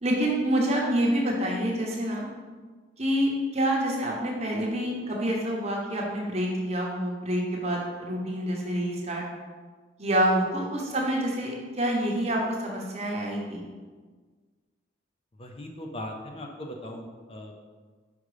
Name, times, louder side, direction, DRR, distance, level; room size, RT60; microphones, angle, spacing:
voice 1, 0.0-2.3 3.0-9.2 10.0-13.6, right 1 dB, 35° right, -2 dB, 1.0 m, -27 dB
voice 2, 15.4-17.5, left 1 dB, 30° left, 2 dB, 0.6 m, -39 dB
5.2 x 5.0 x 4.9 m, 1.5 s
head